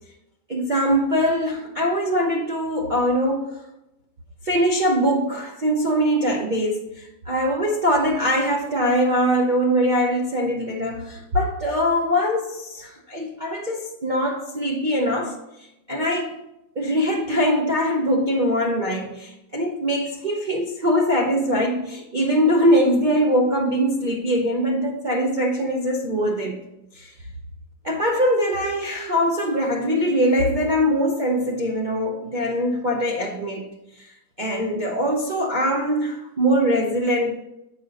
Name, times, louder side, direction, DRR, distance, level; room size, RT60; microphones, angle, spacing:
voice 1, 0.5-3.5 4.4-15.4 15.9-16.4 16.8-26.6 26.9-27.1 27.8-33.7 34.0-34.1 34.4-37.3, equal, 75° right, 0.4 m, -22 dB
7.8 x 5.2 x 4.0 m
omnidirectional pair, 2.1 m